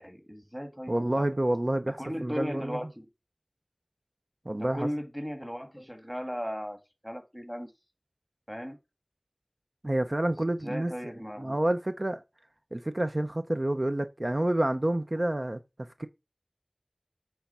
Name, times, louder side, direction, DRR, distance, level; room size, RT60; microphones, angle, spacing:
voice 1, 0.0-1.3 1.8-3.1 4.5-6.8 7.0-7.7 8.5-8.8 10.3-10.4 10.6-11.6, equal, ahead, 1.6 m, -37 dB
voice 2, 0.9-2.8 4.5-4.9 9.8-11.1 11.4-12.2 12.7-15.6 16.0-16.1, right 1 dB, 50° right, 0.7 m, -28 dB
8.6 x 3.4 x 5.5 m
wide cardioid pair, 40°, 0 cm